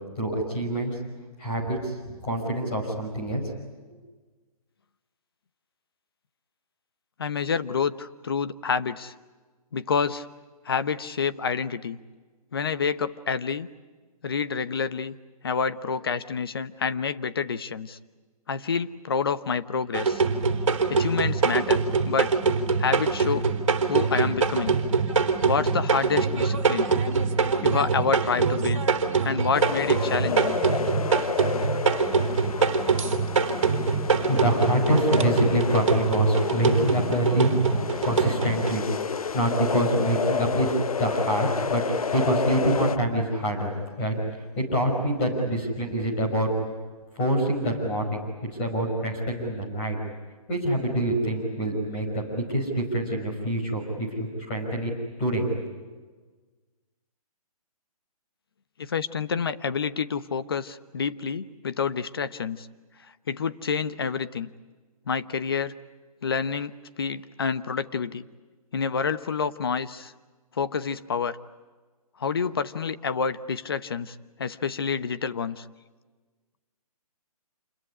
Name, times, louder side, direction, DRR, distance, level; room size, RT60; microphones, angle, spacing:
voice 1, 0.2-0.9 1.4-3.4 34.2-37.5 38.0-43.7 44.0-46.5 47.2-48.2 48.6-50.0 50.5-54.9 55.2-55.5, right 1 dB, 15° left, 0 dB, 5.3 m, -26 dB
voice 2, 7.2-9.1 9.7-10.3 10.6-12.0 12.5-13.7 14.2-15.2 15.4-18.0 18.5-20.2 20.9-21.8 22.0-22.3 22.8-23.5 23.9-24.8 25.5-26.9 27.6-28.9 29.2-30.6 58.8-62.7 63.3-64.5 65.1-65.7 66.2-68.2 68.7-70.1 70.6-71.4 72.2-75.6, left 6 dB, 40° left, 13 dB, 0.9 m, -28 dB
sound 1, 19.9-38.7, right 5 dB, 50° right, 3.1 m, -24 dB
sound 2, 29.5-43.0, left 6 dB, 65° left, 1.0 m, -30 dB
28.0 x 21.5 x 9.9 m, 1.4 s
hypercardioid pair, 180°, 20 cm